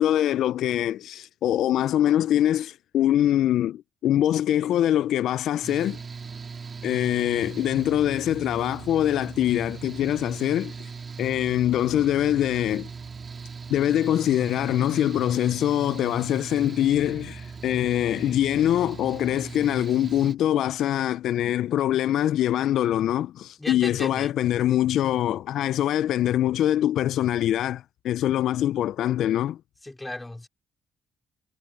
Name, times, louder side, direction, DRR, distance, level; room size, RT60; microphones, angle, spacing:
voice 1, 0.0-6.0 6.8-10.9 11.2-12.9 13.7-29.6, left 12 dB, 75° left, 0.3 m, -24 dB
Mechanical fan, 5.6-20.4, right 5 dB, 40° right, 2.6 m, -39 dB
voice 2, 23.6-24.3 29.8-30.5, left 2 dB, 15° left, 3.9 m, -35 dB
cardioid pair, 90°, 0 cm